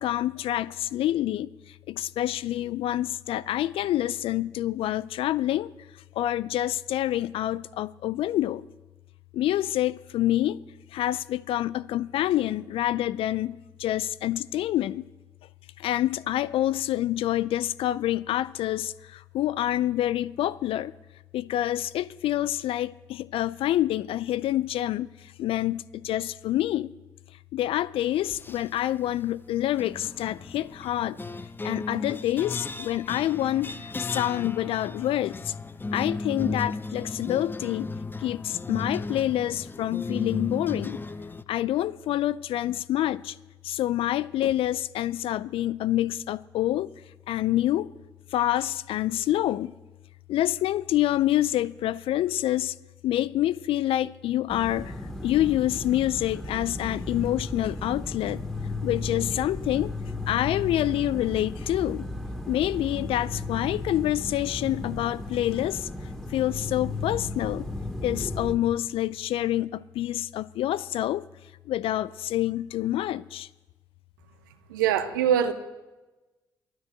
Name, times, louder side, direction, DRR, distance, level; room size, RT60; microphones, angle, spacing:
voice 1, 0.0-5.7 6.1-8.6 9.3-10.6 10.9-15.0 15.8-20.9 21.3-26.9 27.5-31.2 31.6-35.5 35.9-37.9 38.2-41.0 41.5-43.4 43.6-46.9 47.3-47.9 48.3-49.7 50.3-52.7 53.0-58.4 58.8-59.9 60.3-62.1 62.5-65.9 66.3-67.7 68.0-71.2 71.7-73.5, left 13 dB, 60° left, 0.4 m, -27 dB
sound 1, 28.2-28.8 29.8-41.4, left 3 dB, 20° left, 0.7 m, -35 dB
sound 2, 54.5-68.5, left 2 dB, 5° left, 2.7 m, -35 dB
voice 2, 74.7-75.5, right 9 dB, 85° right, 0.9 m, -23 dB
13.0 x 12.5 x 8.2 m
hypercardioid pair, 45°, 10 cm